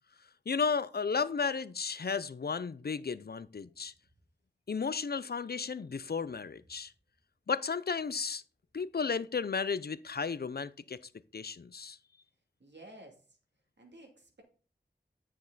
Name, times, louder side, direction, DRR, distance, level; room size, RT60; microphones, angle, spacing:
voice 1, 0.5-3.9 4.7-6.9 7.5-8.4 8.7-11.0 11.3-12.0, left 5 dB, 60° left, 0.6 m, -33 dB
voice 2, 12.6-13.2 13.8-14.4, right 1 dB, 75° right, 2.5 m, -52 dB
9.7 x 6.4 x 4.0 m
wide cardioid pair, 45°, 18 cm